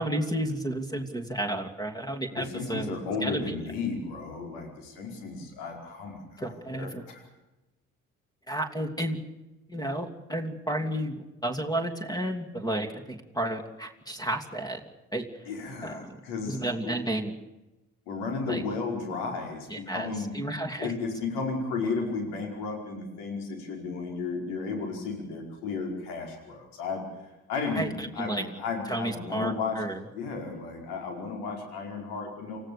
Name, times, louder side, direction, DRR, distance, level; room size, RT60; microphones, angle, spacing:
voice 1, 0.0-2.9 3.2-3.6 6.4-7.0 8.5-9.2 9.7-14.8 15.1-15.3 15.8-16.2 16.5-17.3 18.5-18.6 19.7-20.9 27.8-28.4 28.9-30.0, right 1 dB, 10° left, 7 dB, 2.9 m, -32 dB
voice 2, 2.3-7.2 15.5-17.0 18.1-20.3 20.8-27.0 27.5-29.8 30.1-32.6, left 4 dB, 65° left, 2 dB, 5.2 m, -34 dB
28.5 x 15.5 x 7.0 m, 1.0 s
figure-of-eight pair, 50°, 42 cm